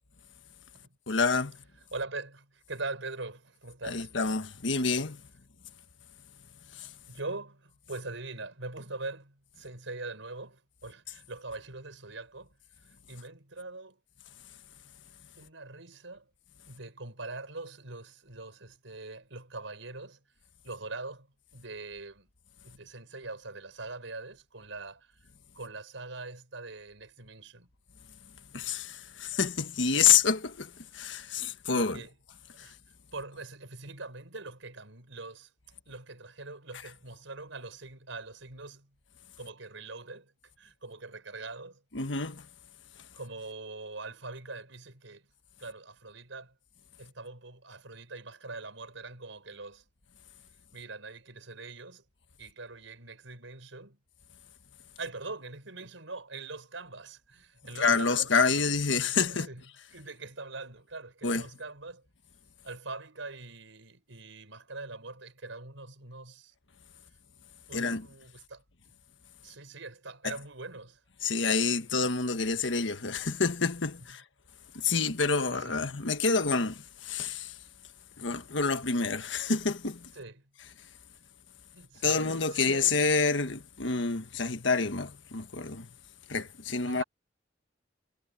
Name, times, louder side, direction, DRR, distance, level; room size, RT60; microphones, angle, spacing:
voice 1, 1.1-1.6 3.8-5.2 6.7-6.9 28.5-32.0 32.6-32.7 41.9-42.5 57.7-59.5 61.2-61.4 67.7-68.1 70.2-70.4 71.2-74.2 74.7-77.6 78.2-80.1 82.0-85.9 86.3-87.0, left 5 dB, 70° left, 1.5 m, -28 dB
voice 2, 1.9-4.1 7.1-12.5 12.8-14.0 15.4-16.3 16.7-20.2 20.6-21.3 21.5-22.3 22.6-25.3 25.5-27.7 31.2-32.1 32.6-32.8 33.1-35.5 35.8-38.9 39.4-40.3 40.6-41.8 43.1-45.2 45.6-46.5 47.0-49.8 50.7-52.0 52.4-54.0 55.0-58.3 59.3-59.6 59.9-62.0 62.6-66.5 67.7-68.6 69.4-71.0 75.5-75.8 80.1-80.4 81.7-82.9 86.8-87.0, right 3 dB, 90° right, 5.1 m, -43 dB
head